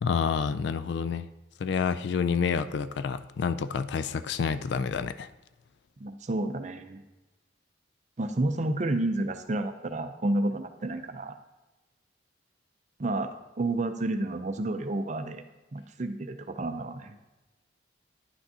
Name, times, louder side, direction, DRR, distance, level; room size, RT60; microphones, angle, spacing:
voice 1, 0.0-1.3 1.6-5.3, left 6 dB, 65° left, 13 dB, 0.3 m, -28 dB
voice 2, 6.0-7.0 8.2-11.3 13.0-13.3 13.6-15.4 15.7-17.2, right 2 dB, 40° right, 8 dB, 0.5 m, -30 dB
9.8 x 6.0 x 2.7 m, 1.1 s
head